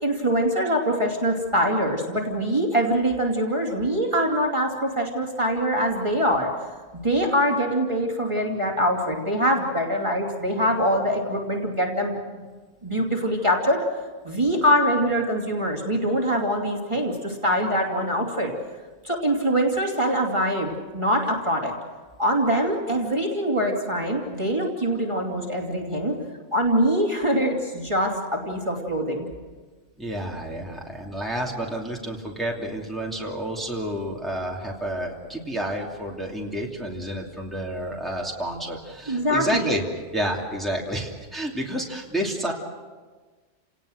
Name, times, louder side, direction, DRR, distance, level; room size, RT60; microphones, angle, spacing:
voice 1, 0.0-6.5 7.0-12.4 12.8-13.9 14.2-18.5 19.0-21.7 22.2-26.2 26.5-29.3 39.1-39.7, equal, 25° right, -1 dB, 2.8 m, -24 dB
voice 2, 30.0-39.8 40.1-42.5, right 1 dB, ahead, -2 dB, 2.8 m, -30 dB
30.0 x 18.5 x 6.5 m, 1.4 s
omnidirectional pair, 1.2 m